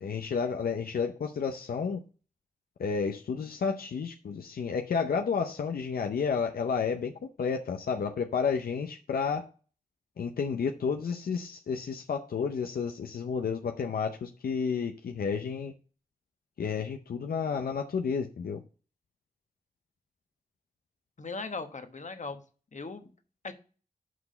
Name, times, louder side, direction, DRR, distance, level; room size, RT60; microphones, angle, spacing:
voice 1, 0.0-2.0 2.8-7.1 7.4-9.5 10.2-15.7 16.6-18.6, left 6 dB, 90° left, 0.6 m, -31 dB
voice 2, 21.2-22.4 22.7-23.1 23.4-23.5, left 3 dB, 55° left, 1.2 m, -38 dB
6.0 x 4.8 x 6.7 m
cardioid pair, 50°, 15 cm